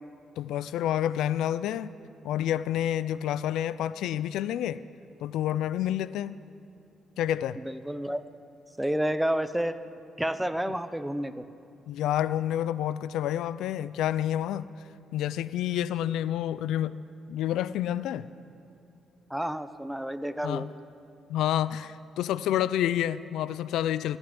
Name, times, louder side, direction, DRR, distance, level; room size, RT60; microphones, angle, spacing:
voice 1, 0.4-1.9 2.2-4.8 5.2-6.4 7.2-7.6 11.9-14.7 15.1-17.0 17.3-18.3 20.4-20.7 21.3-24.2, left 11 dB, 85° left, 17 dB, 0.3 m, -29 dB
voice 2, 7.6-8.2 8.8-9.8 10.2-11.4 19.3-20.7, right 1 dB, 5° right, 13 dB, 0.6 m, -30 dB
15.0 x 8.0 x 10.0 m, 2.8 s
cardioid pair, 90°, 0 cm